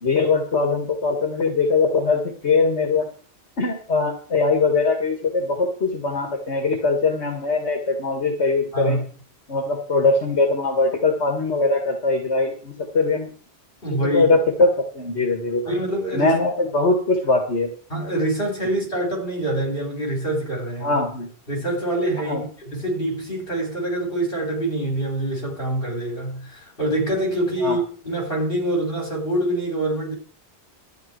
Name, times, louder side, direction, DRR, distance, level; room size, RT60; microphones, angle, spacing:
voice 1, 0.0-3.1 3.6-9.0 9.5-13.3 13.9-15.6 16.1-17.7 20.8-21.3 22.3-22.4 27.6-27.8, left 3 dB, 80° left, 2.1 m, -21 dB
voice 2, 8.7-9.0 13.8-14.3 15.6-16.4 17.9-21.0 21.5-30.1, right 1 dB, 55° left, 4.6 m, -25 dB
13.0 x 9.6 x 4.6 m
omnidirectional pair, 1.1 m